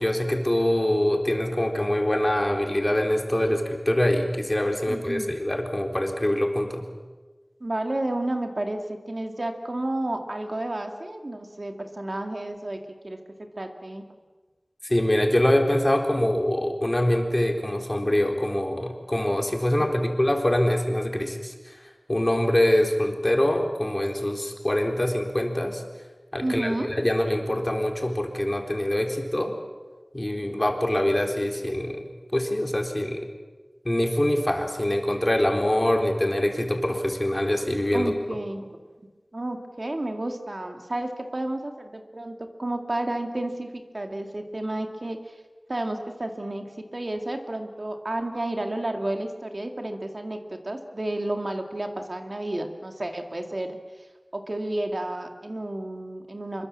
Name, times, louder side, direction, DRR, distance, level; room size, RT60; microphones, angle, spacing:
voice 1, 0.0-6.8 14.8-21.8 22.1-25.8 26.3-29.6 30.1-32.0 32.3-33.2 33.8-38.1, left 1 dB, 25° left, 2 dB, 4.0 m, -24 dB
voice 2, 4.9-5.4 7.6-14.0 20.0-20.1 26.4-26.9 37.9-38.8 39.3-45.4 45.7-56.7, right 1 dB, 55° right, 4 dB, 2.2 m, -31 dB
25.5 x 22.5 x 7.5 m, 1.3 s
wide cardioid pair, 50°, 0 cm